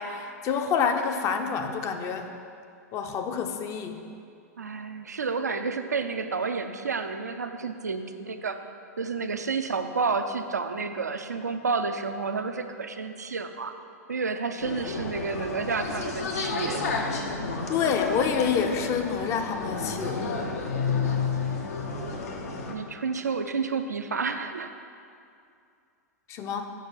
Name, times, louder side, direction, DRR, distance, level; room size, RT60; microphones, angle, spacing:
voice 1, 0.0-2.3 2.9-4.0 17.7-20.2 26.3-26.7, left 6 dB, 35° left, 6 dB, 0.7 m, -28 dB
voice 2, 4.6-8.6 9.0-13.7 14.1-16.9 22.7-24.7, right 4 dB, 85° right, 8 dB, 0.5 m, -30 dB
sound 1, 14.6-22.7, left 4 dB, 65° left, 1.1 m, -31 dB
6.8 x 5.7 x 6.3 m, 2.4 s
hypercardioid pair, 105°, 9 cm